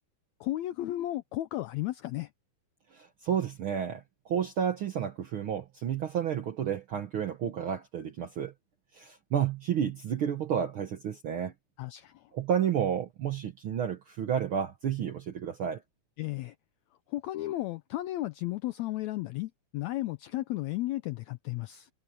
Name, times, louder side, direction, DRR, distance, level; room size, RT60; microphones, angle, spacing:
voice 1, 0.4-2.3 11.8-12.3 16.2-16.5 17.1-21.9, left 16 dB, 85° left, 1.6 m, -34 dB
voice 2, 2.9-8.5 8.9-11.5 12.3-15.8, right 8 dB, 70° right, 1.3 m, -31 dB
omnidirectional pair, 3.8 m